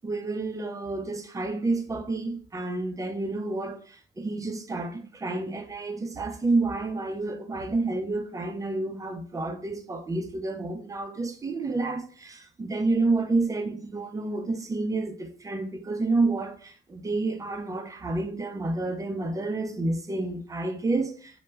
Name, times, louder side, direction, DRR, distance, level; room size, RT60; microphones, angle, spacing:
voice 1, 0.0-21.4, right 3 dB, 15° right, 0.4 m, -29 dB
2.2 x 2.1 x 3.1 m
cardioid pair, 90°, 20 cm